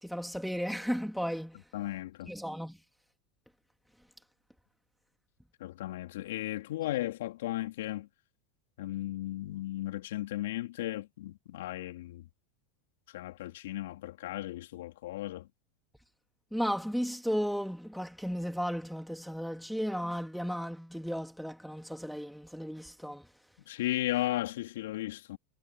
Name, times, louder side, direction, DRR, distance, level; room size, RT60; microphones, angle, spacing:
voice 1, 0.0-1.6 2.3-2.8 16.5-23.3, equal, ahead, 3.2 m, -34 dB
voice 2, 1.7-2.3 5.6-8.1 8.8-12.2 13.1-15.5 23.7-25.4, left 15 dB, 75° left, 3.0 m, -35 dB
hypercardioid pair, 95°, 0 cm